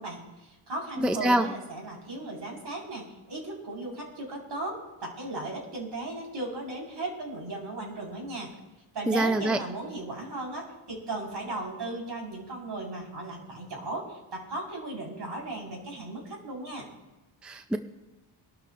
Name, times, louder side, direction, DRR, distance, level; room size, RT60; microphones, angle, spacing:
voice 1, 0.0-8.5 8.9-16.9, right 2 dB, 55° right, -2 dB, 4.5 m, -36 dB
voice 2, 1.0-1.5 9.1-9.6 17.4-17.8, right 1 dB, ahead, 8 dB, 0.4 m, -25 dB
24.5 x 12.5 x 2.5 m, 1.1 s
wide cardioid pair, 130°, 48 cm